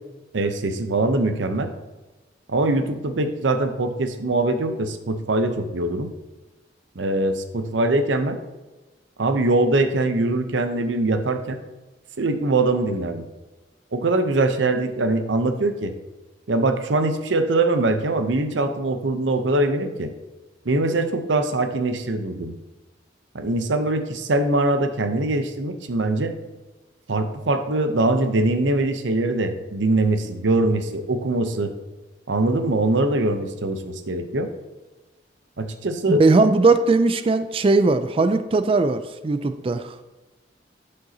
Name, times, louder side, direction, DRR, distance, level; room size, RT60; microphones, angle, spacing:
voice 1, 0.3-1.7 2.5-6.1 7.0-8.4 9.2-11.6 12.2-13.2 13.9-15.9 16.5-20.1 20.7-22.5 23.3-26.3 27.1-31.7 32.3-34.5 35.6-36.2, right 2 dB, 85° right, 8 dB, 0.7 m, -22 dB
voice 2, 36.1-40.0, right 3 dB, 30° right, 10 dB, 0.3 m, -19 dB
11.5 x 5.4 x 2.8 m, 1.2 s
head